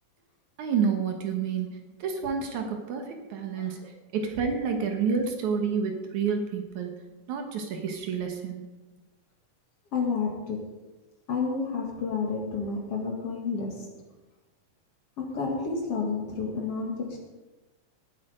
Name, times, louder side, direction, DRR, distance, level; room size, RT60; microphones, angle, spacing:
voice 1, 0.6-3.8 4.1-7.0 7.3-8.6, right 6 dB, 65° right, 4 dB, 2.5 m, -29 dB
voice 2, 9.9-10.6 11.3-13.9 15.2-17.2, left 4 dB, 50° left, 0 dB, 2.6 m, -30 dB
18.0 x 8.3 x 5.0 m, 1.1 s
omnidirectional pair, 3.9 m